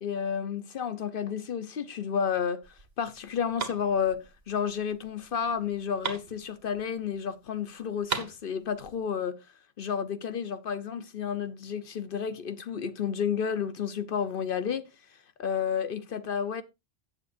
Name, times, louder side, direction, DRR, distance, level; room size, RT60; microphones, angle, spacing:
voice 1, 0.0-2.6 3.0-9.4 9.8-14.9 15.4-16.6, left 7 dB, 60° left, 0.9 m, -31 dB
sound 1, 2.6-7.2 7.5-7.6 7.8-9.1, right 5 dB, 75° right, 1.8 m, -38 dB
16.0 x 7.2 x 2.5 m
omnidirectional pair, 1.0 m